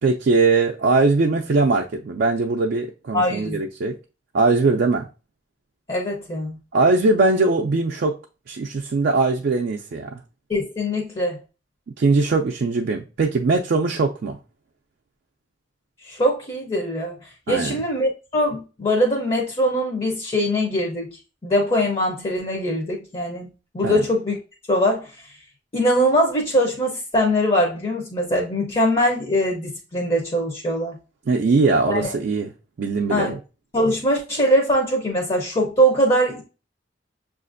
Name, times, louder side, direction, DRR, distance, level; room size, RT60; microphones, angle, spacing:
voice 1, 0.0-4.0 4.3-5.1 6.7-8.2 8.5-10.2 12.0-14.4 17.5-17.8 23.8-24.0 31.3-32.5 32.8-33.4, right 3 dB, 55° right, 0.4 m, -20 dB
voice 2, 3.1-3.6 5.9-6.6 10.5-11.4 16.0-21.1 21.4-23.5 23.7-24.4 24.7-25.2 25.7-31.0 31.9-32.1 33.1-33.3 33.7-36.4, equal, 30° left, 0.6 m, -22 dB
6.5 x 2.5 x 2.5 m
head